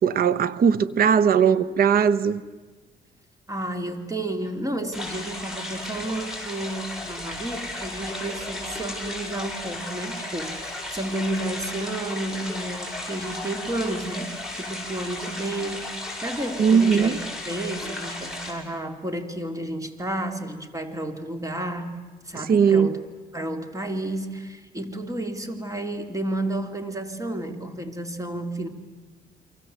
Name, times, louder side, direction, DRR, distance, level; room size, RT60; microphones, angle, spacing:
voice 1, 0.0-2.4 16.6-17.2 22.3-23.0, right 7 dB, 60° right, 1.1 m, -19 dB
voice 2, 3.5-22.0 22.2-23.0 23.3-28.7, right 1 dB, 20° right, 3.4 m, -31 dB
sound 1, 4.9-18.5, left 1 dB, 5° right, 7.8 m, -34 dB
29.5 x 23.5 x 8.1 m
cardioid pair, 85°, 17 cm